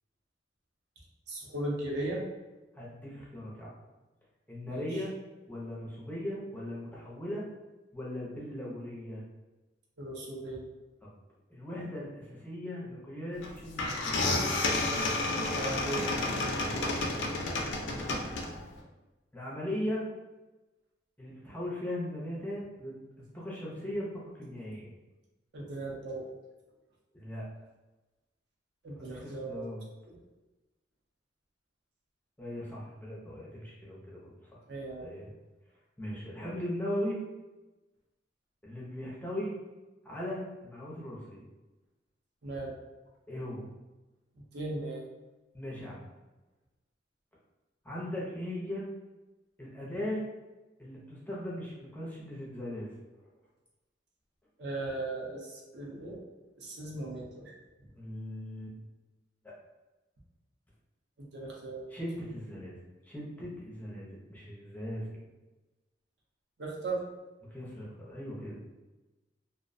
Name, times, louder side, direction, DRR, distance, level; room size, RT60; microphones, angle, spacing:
voice 1, 1.3-2.2 4.6-5.0 10.0-10.7 15.5-16.1 25.5-26.3 28.8-29.6 30.0-30.2 34.7-35.1 42.4-42.7 44.5-45.1 54.6-56.2 56.6-57.6 61.2-61.9 66.6-67.0, right 2 dB, 60° right, -2 dB, 0.6 m, -37 dB
voice 2, 2.7-3.7 4.5-5.1 5.5-7.4 7.9-9.2 11.0-11.1 11.5-14.3 16.6-16.8 18.0-18.4 19.3-20.1 21.2-23.0 23.3-24.9 27.1-27.4 29.1-29.8 32.4-34.3 35.0-35.3 36.0-37.2 38.6-39.5 40.0-41.4 43.3-43.7 45.5-46.0 47.8-48.9 49.6-50.2 50.8-52.9 57.9-58.7 61.9-62.7 63.0-65.2 67.5-68.6, left 1 dB, 10° left, -5 dB, 0.5 m, -38 dB
sound 1, 13.4-13.5 13.8-18.7, left 2 dB, 75° left, 0.4 m, -31 dB
2.4 x 2.1 x 2.5 m, 1.1 s
head